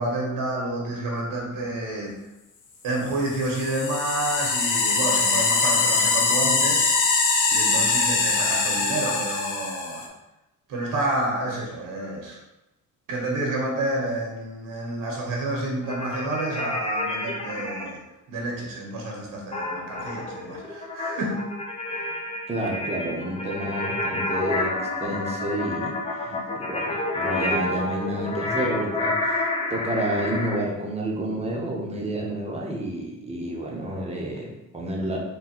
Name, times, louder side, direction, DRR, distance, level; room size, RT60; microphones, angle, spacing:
voice 1, 0.0-2.2 2.8-6.9 7.5-10.1 10.7-12.4 13.1-18.0 18.3-21.5 21.9-22.1 26.2-26.5, right 1 dB, 85° right, -1 dB, 1.2 m, -29 dB
sound 1, 3.2-10.0, left 4 dB, 65° left, 0.7 m, -23 dB
sound 2, 15.8-17.9 19.5-30.6, left 2 dB, 20° left, 0.5 m, -29 dB
voice 2, 22.5-26.0 26.5-35.2, right 1 dB, 20° right, -2 dB, 0.7 m, -30 dB
3.8 x 2.2 x 4.3 m, 0.96 s
cardioid pair, 145°, 32 cm